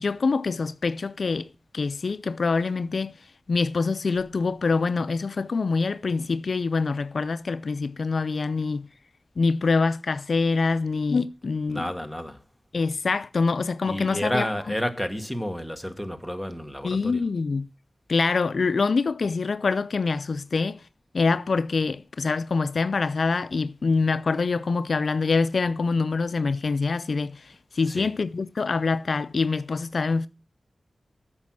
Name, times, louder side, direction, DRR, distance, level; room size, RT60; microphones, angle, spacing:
voice 1, 0.0-1.5 1.7-3.1 3.5-8.9 9.4-11.8 12.7-14.4 16.8-17.7 18.1-20.8 21.1-30.3, left 4 dB, 70° left, 0.5 m, -25 dB
voice 2, 11.7-12.4 13.9-17.2 27.9-28.1, equal, ahead, 1.4 m, -30 dB
8.6 x 6.0 x 6.0 m
wide cardioid pair, 60°, 0 cm